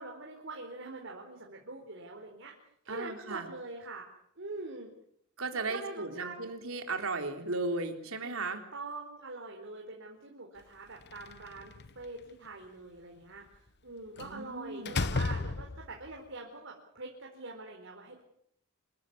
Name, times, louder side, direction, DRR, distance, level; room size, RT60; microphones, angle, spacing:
voice 1, 0.0-2.5 2.8-4.0 4.4-4.9 5.5-6.3 8.2-8.3 8.7-18.2, right 3 dB, 60° right, 0 dB, 4.5 m, -44 dB
voice 2, 2.9-3.5 5.4-8.6 14.2-15.0, right 3 dB, 80° right, 5 dB, 3.8 m, -36 dB
Slam, 11.0-12.1 14.2-14.4 14.9-16.1, left 3 dB, 55° left, 1.0 m, -33 dB
27.0 x 14.5 x 9.8 m, 0.71 s
head